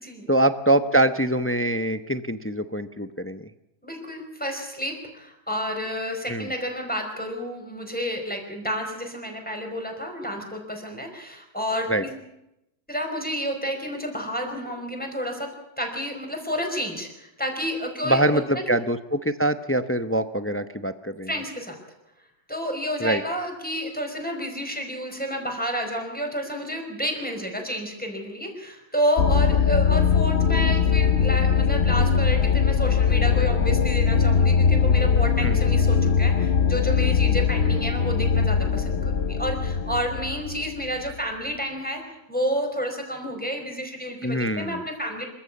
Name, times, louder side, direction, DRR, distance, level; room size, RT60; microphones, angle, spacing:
voice 1, 0.3-3.5 6.3-6.5 11.9-12.0 18.0-21.3 23.0-23.2 35.4-35.6 44.2-44.8, right 1 dB, 20° left, 11 dB, 0.3 m, -24 dB
voice 2, 3.8-12.1 12.9-15.5 15.8-18.6 21.3-21.8 22.5-42.0 42.3-45.2, equal, 5° left, 2 dB, 4.9 m, -30 dB
sound 1, 29.2-41.1, left 6 dB, 45° left, 1.1 m, -21 dB
26.0 x 14.5 x 8.5 m, 0.87 s
omnidirectional pair, 1.7 m